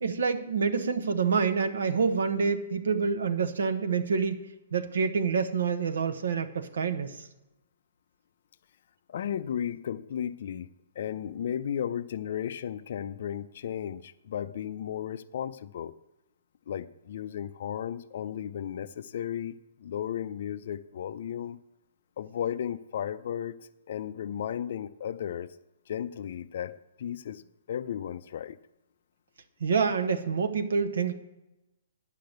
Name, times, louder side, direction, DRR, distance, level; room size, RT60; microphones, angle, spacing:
voice 1, 0.0-7.3 29.6-31.1, right 5 dB, 80° right, 7 dB, 1.0 m, -27 dB
voice 2, 9.1-10.7 11.0-15.9 16.7-21.6 22.2-25.6 25.9-27.4 27.7-28.6, left 9 dB, 50° left, 12 dB, 0.4 m, -34 dB
10.5 x 5.7 x 7.9 m, 0.95 s
hypercardioid pair, 170°, 0 cm